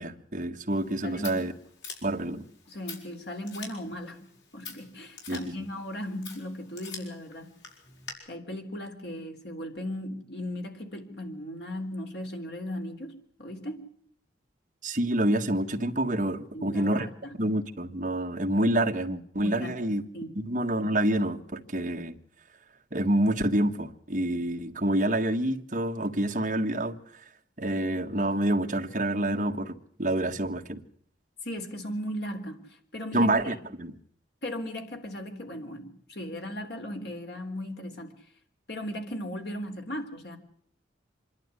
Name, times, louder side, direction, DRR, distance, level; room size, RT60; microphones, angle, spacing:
voice 1, 0.0-1.5 2.0-2.4 5.3-5.5 14.8-17.1 17.4-20.0 20.3-22.2 22.9-27.0 27.6-29.7 30.0-30.8 33.1-33.9, right 1 dB, 40° right, 1.6 m, -27 dB
Scissors, 0.7-8.1, left 5 dB, 80° left, 6.1 m, -46 dB
voice 2, 1.0-1.4 2.7-4.3 4.5-7.5 8.3-13.9 16.5-17.3 19.4-20.4 31.4-33.6 34.4-38.1 38.7-40.4, left 1 dB, 60° left, 3.7 m, -37 dB
26.0 x 12.0 x 9.8 m
head